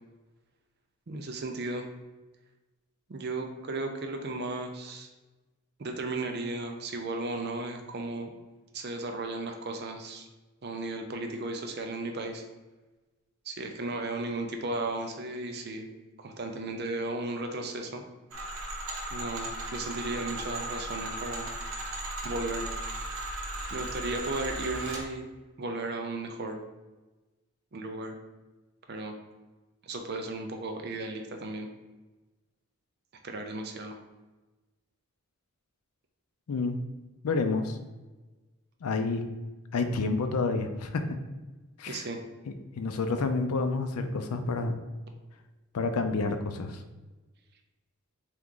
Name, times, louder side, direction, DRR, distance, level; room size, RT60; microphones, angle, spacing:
voice 1, 1.1-1.9 3.1-5.1 5.8-8.3 8.7-10.3 10.6-12.4 13.5-15.9 16.2-18.0 19.1-21.5 22.2-22.7 23.7-25.3 25.6-26.6 27.7-28.2 28.9-29.1 29.8-31.7 33.2-34.0 41.9-42.2, right 2 dB, 45° right, 4 dB, 0.5 m, -35 dB
sound 1, 18.3-25.0, right 1 dB, 75° right, 0.9 m, -36 dB
voice 2, 37.2-37.8 38.8-39.3 39.7-41.0 41.8-42.1 42.5-44.8 45.7-46.8, left 3 dB, 85° left, 8 dB, 0.5 m, -29 dB
3.5 x 3.0 x 3.7 m, 1.2 s
head